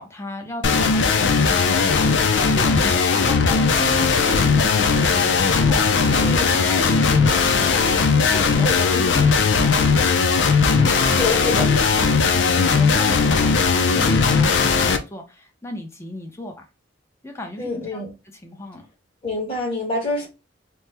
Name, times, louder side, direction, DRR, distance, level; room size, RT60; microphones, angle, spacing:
voice 1, 0.0-6.0 6.3-8.7 9.0-9.7 11.9-16.5 17.2-18.0 18.4-18.9, left 1 dB, 15° left, 0.6 m, -35 dB
sound 1, 0.6-15.0, left 5 dB, 85° left, 0.4 m, -18 dB
voice 2, 6.1-6.6 8.6-9.2 10.7-11.7 14.0-14.3 17.6-18.1 19.2-20.3, left 2 dB, 30° left, 1.3 m, -27 dB
3.0 x 2.1 x 3.3 m
head